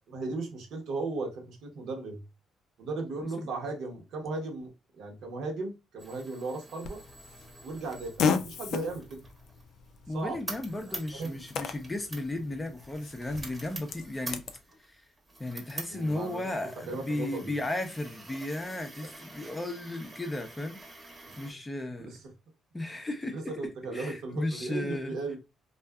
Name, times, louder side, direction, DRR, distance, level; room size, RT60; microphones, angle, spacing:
voice 1, 0.1-2.2 2.8-7.0 7.6-9.2 10.1-10.4 10.8-11.4 15.9-16.4 16.9-17.5 21.2-21.4 22.0-22.2 23.3-25.4, right 3 dB, 70° right, 0.9 m, -36 dB
sound 1, 6.0-21.5, right 2 dB, 25° right, 0.9 m, -47 dB
Fart, 6.8-14.6, left 6 dB, 70° left, 0.3 m, -36 dB
voice 2, 10.1-14.4 14.9-15.0 15.4-20.8 21.4-22.1 22.7-23.5 23.9-25.2, left 1 dB, 15° left, 0.5 m, -35 dB
2.6 x 2.4 x 2.2 m
cardioid pair, 100°, 0 cm